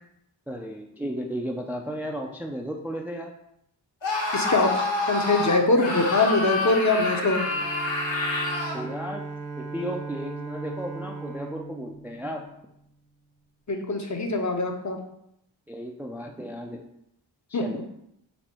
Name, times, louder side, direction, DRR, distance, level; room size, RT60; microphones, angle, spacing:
voice 1, 0.5-3.3 8.7-9.2 9.6-12.4 15.7-16.8 17.5-17.8, equal, 5° right, 2 dB, 0.3 m, -34 dB
Screaming, 4.0-8.9, left 2 dB, 65° left, 1.2 m, -28 dB
voice 2, 4.3-7.4 13.7-15.0 17.5-17.6, left 2 dB, 40° left, 3 dB, 0.6 m, -23 dB
Bowed string instrument, 7.4-13.0, right 4 dB, 65° right, 0.9 m, -38 dB
4.2 x 2.6 x 4.3 m, 0.78 s
wide cardioid pair, 55°, 47 cm